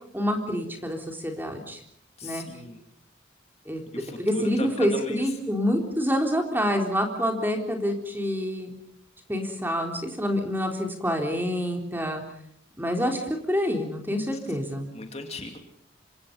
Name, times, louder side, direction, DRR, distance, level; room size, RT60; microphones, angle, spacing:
voice 1, 0.1-1.8 2.2-2.4 3.7-3.8 4.2-8.7 9.3-12.2 12.8-13.2 13.5-14.9, equal, 10° right, 2 dB, 3.9 m, -27 dB
voice 2, 2.2-2.8 3.9-5.4 14.5-14.6 14.9-15.6, left 2 dB, 30° left, 4 dB, 2.6 m, -37 dB
27.0 x 26.0 x 5.5 m, 0.70 s
head